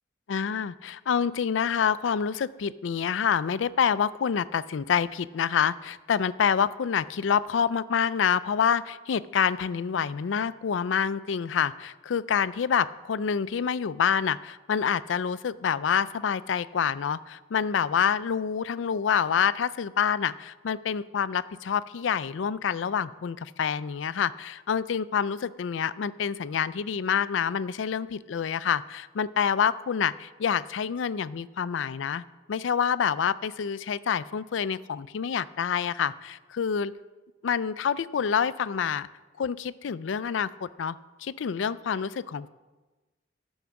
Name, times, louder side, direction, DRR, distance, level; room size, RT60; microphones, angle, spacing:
voice 1, 0.3-32.2 32.5-36.9 37.4-39.1 39.4-42.5, left 7 dB, 85° left, 17 dB, 0.4 m, -27 dB
12.0 x 6.3 x 7.0 m, 1.2 s
head